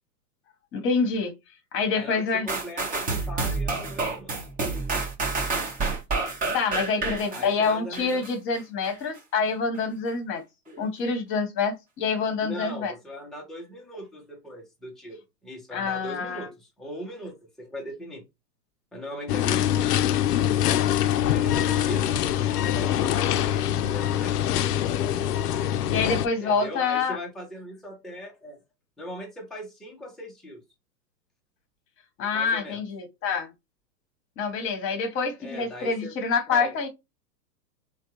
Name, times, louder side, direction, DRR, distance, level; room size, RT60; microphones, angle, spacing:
voice 1, 0.7-1.3 1.7-2.5 6.5-10.4 10.8-12.9 15.7-16.5 25.9-27.2 32.2-33.5 34.4-36.9, left 5 dB, 25° left, 1.0 m, -26 dB
voice 2, 1.9-4.3 7.3-8.2 10.7-10.8 12.4-18.2 18.9-19.9 21.3-22.2 22.6-24.4 26.4-28.6 29.0-30.6 32.3-32.8 35.4-36.2 36.5-36.8, equal, ahead, 0.5 m, -39 dB
sound 1, 2.5-8.3 8.8-8.9, right 3 dB, 15° right, 0.8 m, -29 dB
sound 2, 19.3-26.3, left 11 dB, 70° left, 0.5 m, -24 dB
3.4 x 2.2 x 2.9 m
hypercardioid pair, 115°, 49 cm